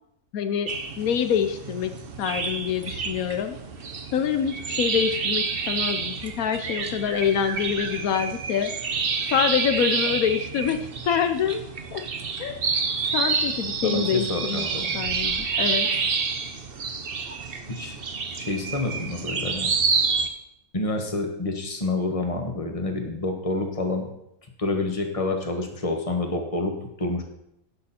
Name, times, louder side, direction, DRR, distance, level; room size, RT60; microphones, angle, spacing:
voice 1, 0.3-0.7 1.0-1.9 2.2-3.6 4.1-8.7 9.3-10.8 11.1-11.6 11.9-12.0 12.4-12.6 13.1-14.7 14.9-15.9, left 8 dB, 80° left, 8 dB, 1.1 m, -25 dB
sound 1, 0.7-20.3, right 5 dB, 45° right, 1.0 m, -28 dB
voice 2, 13.8-15.0 17.7-17.9 18.4-19.7 20.7-24.1 24.6-26.7 27.0-27.2, left 2 dB, 25° left, 3 dB, 1.5 m, -28 dB
16.5 x 6.4 x 4.3 m, 0.80 s
omnidirectional pair, 1.5 m